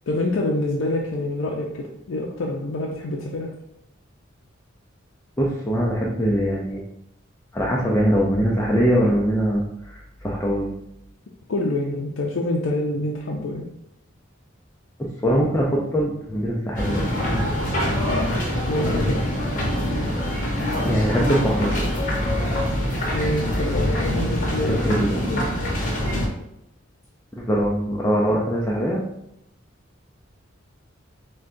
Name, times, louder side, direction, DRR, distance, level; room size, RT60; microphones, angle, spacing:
voice 1, 0.1-3.5 11.5-13.7 18.7-19.2 23.1-25.0 25.3-25.4, left 1 dB, 75° left, -1 dB, 0.5 m, -26 dB
voice 2, 5.4-6.8 7.5-10.7 15.0-17.2 20.9-21.7 24.6-25.2 27.4-29.0, equal, 10° left, -5 dB, 0.4 m, -22 dB
sound 1, 16.8-26.3, equal, 40° left, 1.0 m, -24 dB
6.3 x 2.2 x 2.5 m, 0.79 s
head